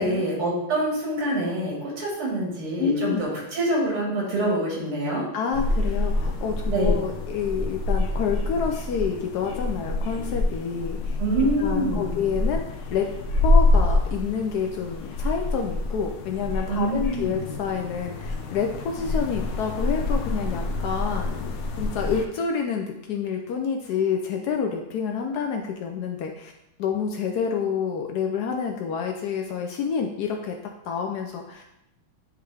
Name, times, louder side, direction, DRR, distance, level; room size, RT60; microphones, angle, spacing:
voice 1, 0.0-5.3 6.7-7.0 11.2-12.2 16.7-17.4, right 1 dB, 85° right, -3 dB, 2.8 m, -26 dB
voice 2, 2.8-3.3 5.3-11.2 11.6-12.6 12.9-13.1 13.4-21.5 21.8-26.5 26.8-30.6 30.9-31.7, left 6 dB, 90° left, 3 dB, 0.8 m, -28 dB
sound 1, 5.5-22.3, left 2 dB, 70° left, 1.2 m, -26 dB
10.0 x 3.4 x 3.3 m, 0.86 s
omnidirectional pair, 2.4 m